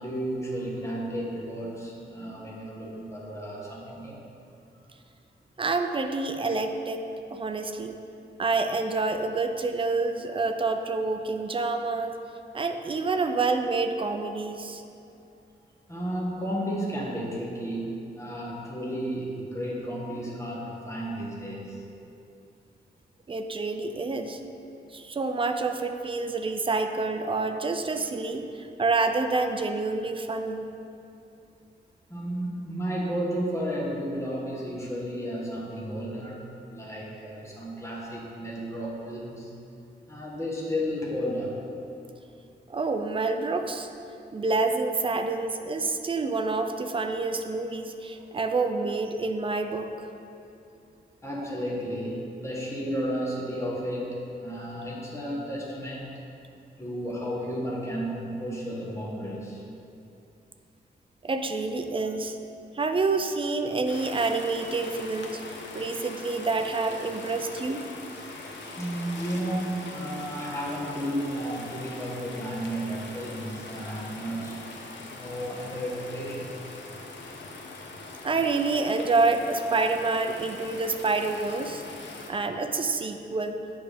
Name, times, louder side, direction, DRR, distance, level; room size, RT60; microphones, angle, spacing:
voice 1, 0.0-4.2 15.9-21.8 32.1-36.4 36.7-39.5 40.1-41.5 51.2-56.1 56.8-59.6 68.8-74.6 75.1-76.5, equal, 15° left, -5 dB, 1.2 m, -33 dB
voice 2, 5.6-8.0 8.4-12.2 12.5-14.8 23.3-24.4 24.9-30.7 42.7-43.9 44.3-49.9 61.2-62.4 62.7-67.9 78.2-81.8 82.3-83.6, right 3 dB, 30° right, 6 dB, 0.4 m, -28 dB
sound 1, 63.9-82.3, left 3 dB, 80° left, 0.8 m, -42 dB
8.7 x 5.7 x 3.4 m, 2.7 s
wide cardioid pair, 170°, 18 cm